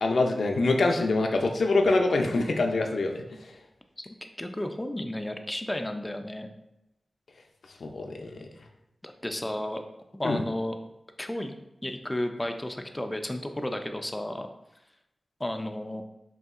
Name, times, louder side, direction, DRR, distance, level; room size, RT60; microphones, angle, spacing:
voice 1, 0.0-3.2 7.8-8.3 10.2-10.4, left 2 dB, 80° left, 3 dB, 0.4 m, -24 dB
voice 2, 4.4-6.5 9.0-9.8 10.2-10.7 11.2-11.5 11.8-14.5 15.4-16.0, left 1 dB, 15° left, 5 dB, 0.3 m, -32 dB
5.2 x 2.7 x 2.4 m, 0.87 s
wide cardioid pair, 85°, 0 cm